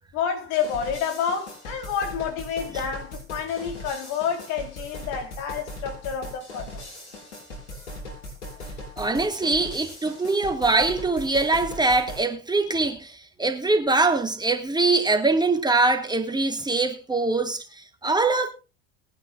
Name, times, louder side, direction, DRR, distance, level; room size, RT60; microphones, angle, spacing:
voice 1, 0.1-6.8, left 7 dB, 55° left, 4.0 m, -29 dB
sound 1, 0.6-12.3, left 1 dB, 80° left, 6.4 m, -39 dB
voice 2, 9.0-18.5, right 3 dB, 10° right, 1.9 m, -23 dB
21.0 x 9.6 x 2.5 m
hypercardioid pair, 75°, 33 cm